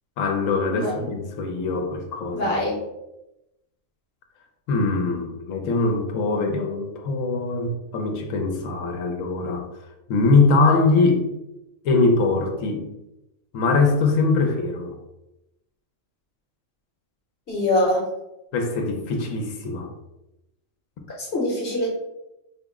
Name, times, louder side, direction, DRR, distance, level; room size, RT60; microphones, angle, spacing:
voice 1, 0.2-2.5 4.7-9.6 10.1-11.2 11.8-12.8 13.5-14.9 18.5-19.9, left 3 dB, 75° left, 3 dB, 1.0 m, -22 dB
voice 2, 0.7-1.1 2.3-2.8 17.5-18.1 21.2-21.9, left 1 dB, 50° left, -3 dB, 1.0 m, -23 dB
4.3 x 2.0 x 3.5 m, 0.91 s
omnidirectional pair, 1.4 m